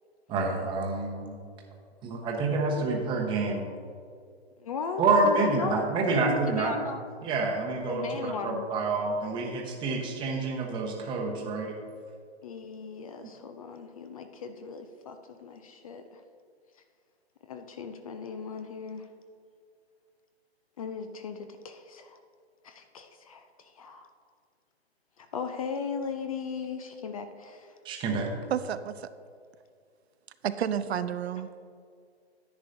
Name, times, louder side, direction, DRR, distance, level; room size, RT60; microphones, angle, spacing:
voice 1, 0.3-1.4 2.0-3.7 5.0-6.8 7.2-11.7 27.8-28.3, right 3 dB, 15° right, 1 dB, 0.9 m, -28 dB
voice 2, 4.6-7.0 7.8-8.7 12.4-16.2 17.5-19.1 20.8-22.2 22.6-24.1 25.2-27.7, left 5 dB, 35° left, 7 dB, 0.4 m, -37 dB
voice 3, 28.5-29.1 30.4-31.5, right 9 dB, 70° right, 12 dB, 0.5 m, -30 dB
10.0 x 9.3 x 2.6 m, 2.2 s
hypercardioid pair, 140°, 33 cm